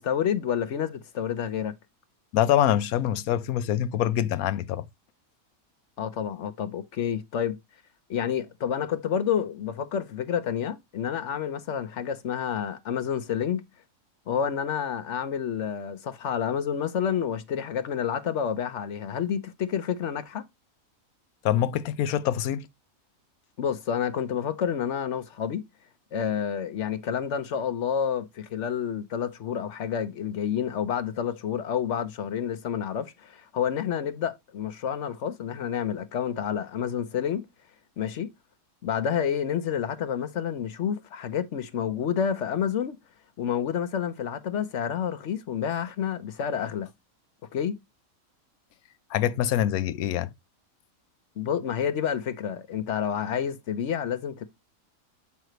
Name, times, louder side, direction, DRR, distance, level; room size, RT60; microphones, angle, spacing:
voice 1, 0.0-1.7 6.0-7.6 8.1-13.6 14.3-20.4 23.6-25.6 26.1-37.4 38.0-38.3 38.8-43.0 43.4-46.9 47.5-47.8 51.4-54.4, left 8 dB, 60° left, 1.0 m, -29 dB
voice 2, 2.3-4.9 21.4-22.7 49.1-50.3, left 11 dB, 85° left, 1.1 m, -25 dB
7.8 x 5.7 x 3.0 m
omnidirectional pair, 1.5 m